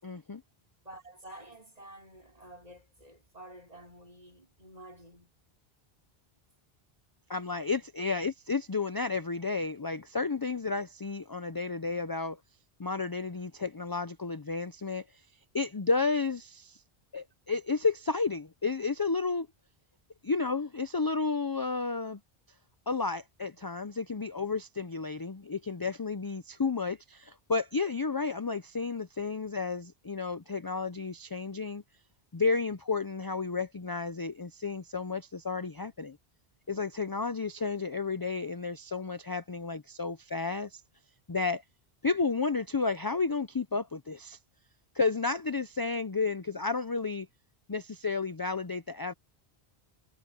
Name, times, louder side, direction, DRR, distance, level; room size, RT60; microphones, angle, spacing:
voice 1, 0.0-0.4 7.3-12.4 12.8-15.1 15.5-16.8 17.1-19.5 20.2-22.2 22.9-31.8 32.3-36.2 36.7-40.8 41.3-41.6 42.0-44.4 44.9-47.3 47.7-49.1, left 4 dB, 30° left, 0.5 m, -32 dB
voice 2, 0.8-5.3 8.1-8.3, right 1 dB, 40° right, 5.2 m, -50 dB
omnidirectional pair, 1.0 m